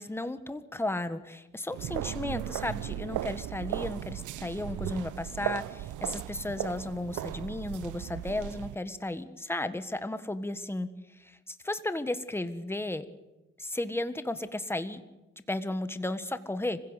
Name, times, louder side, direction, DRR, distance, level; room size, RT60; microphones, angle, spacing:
voice 1, 0.0-13.0 13.6-15.0 15.5-16.8, left 1 dB, 10° left, 11 dB, 1.5 m, -34 dB
sound 1, 1.7-8.7, right 13 dB, 85° right, 0.8 m, -36 dB
25.5 x 16.5 x 8.2 m, 1.0 s
cardioid pair, 90°, 30 cm